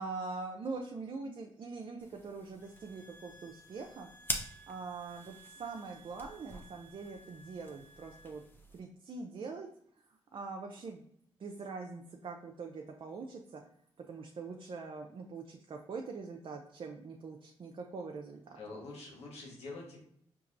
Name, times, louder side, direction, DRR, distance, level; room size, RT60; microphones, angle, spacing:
voice 1, 0.0-4.1 4.7-8.4 8.7-9.7 10.3-11.0 11.4-13.6 14.1-18.6, right 4 dB, 55° right, 2 dB, 0.5 m, -43 dB
sound 1, 2.0-8.8, left 1 dB, 20° left, 0.7 m, -45 dB
sound 2, 2.6-8.5, right 3 dB, 40° left, 0.9 m, -58 dB
voice 2, 18.6-20.0, left 3 dB, 75° left, -3 dB, 1.4 m, -46 dB
4.7 x 2.9 x 2.6 m, 0.67 s
supercardioid pair, 60°, 11 cm